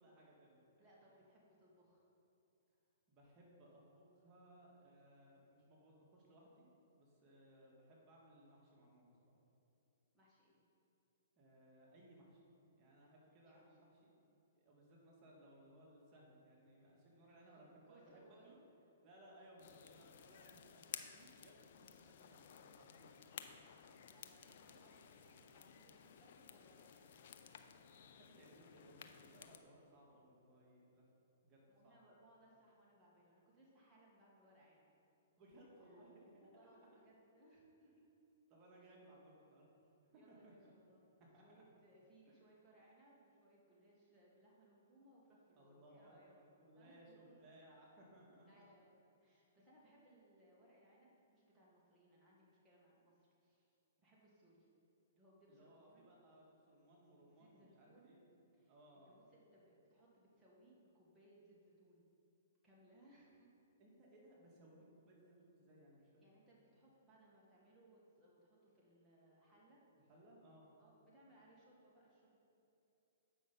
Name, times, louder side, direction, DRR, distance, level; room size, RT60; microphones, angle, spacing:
voice 1, 0.0-0.9 3.1-6.7 6.9-9.3 11.4-14.1 14.6-18.6 19.0-23.1 28.1-31.0 31.4-32.0 35.4-36.1 38.5-40.7 41.3-41.4 42.3-42.4 45.5-48.7 55.5-58.2 58.7-59.2 63.8-66.2 70.1-70.7, right 1 dB, 30° right, -3 dB, 1.8 m, -64 dB
voice 2, 0.8-2.0 10.1-10.6 13.4-13.7 17.2-18.5 24.1-27.2 31.7-34.9 35.8-38.0 40.1-41.1 41.4-46.4 46.7-47.5 48.5-54.7 55.1-56.1 57.2-58.2 58.5-62.0 62.6-63.5 66.0-69.8 70.8-72.4, right 1 dB, 5° right, -7 dB, 1.7 m, -68 dB
sound 1, 19.6-29.6, left 8 dB, 60° left, 0.5 m, -56 dB
7.8 x 5.6 x 5.4 m, 2.9 s
hypercardioid pair, 125°, 0 cm